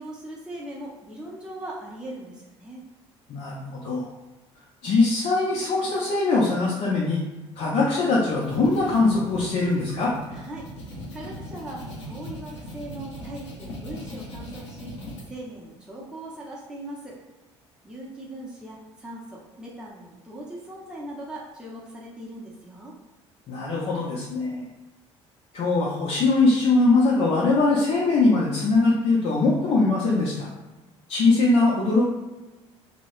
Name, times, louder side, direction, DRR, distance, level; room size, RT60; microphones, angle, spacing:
voice 1, 0.0-2.8 10.3-14.9 15.3-17.2 17.8-23.0, right 1 dB, 5° right, -5 dB, 0.7 m, -40 dB
voice 2, 3.3-4.1 4.8-7.2 7.6-10.1 23.5-24.7 25.5-30.5 31.1-32.0, left 3 dB, 45° left, -5 dB, 0.5 m, -21 dB
sound 1, 8.3-15.2, equal, 80° left, 0.7 m, -39 dB
2.2 x 2.0 x 3.0 m, 1.1 s
figure-of-eight pair, 55°, 15 cm